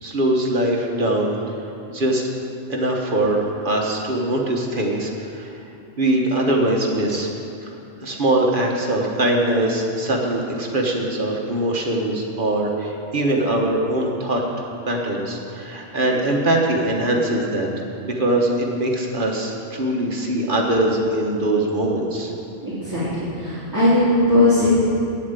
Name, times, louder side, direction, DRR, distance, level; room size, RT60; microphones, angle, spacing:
voice 1, 0.0-1.5 1.9-2.3 2.7-5.6 6.0-7.3 8.0-14.4 14.9-17.7 18.0-22.3, right 1 dB, 45° right, 0 dB, 1.3 m, -22 dB
voice 2, 22.6-24.7, left 1 dB, 15° right, -14 dB, 3.1 m, -19 dB
9.1 x 7.4 x 8.1 m, 2.6 s
omnidirectional pair, 1.3 m